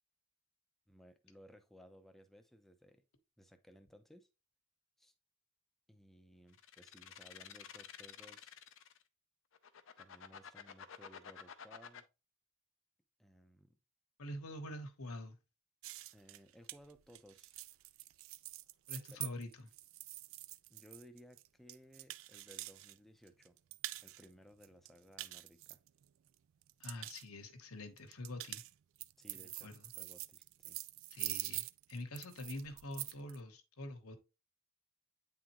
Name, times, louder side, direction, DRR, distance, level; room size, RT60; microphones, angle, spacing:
voice 1, 0.9-3.0 3.4-4.3 5.0-5.1 5.9-8.6 10.0-12.0 13.2-13.8 16.1-17.6 19.1-19.2 20.7-23.6 24.0-25.8 29.2-30.8, equal, ahead, 0.6 m, -60 dB
sound 1, 6.5-9.0 9.5-12.0, left 8 dB, 65° left, 0.6 m, -51 dB
voice 2, 14.2-15.4 18.9-19.7 26.8-28.6 29.6-29.8 31.1-34.2, left 1 dB, 85° left, 1.1 m, -46 dB
sound 2, 15.8-22.9 23.3-24.3 24.6-26.3 26.6-27.2 28.0-33.4, right 17 dB, 70° right, 0.3 m, -45 dB
8.9 x 3.7 x 3.0 m
head